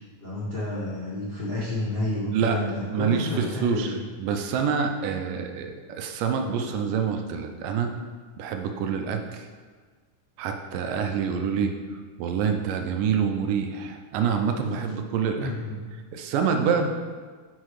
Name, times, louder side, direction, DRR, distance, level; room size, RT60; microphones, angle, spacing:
voice 1, 0.2-4.0 15.4-15.8, left 1 dB, 85° left, -8 dB, 0.5 m, -30 dB
voice 2, 2.3-2.6 2.9-7.9 8.4-9.5 10.4-15.5 16.1-16.9, right 6 dB, 90° right, 5 dB, 2.4 m, -26 dB
6.5 x 6.1 x 4.8 m, 1.5 s
omnidirectional pair, 3.8 m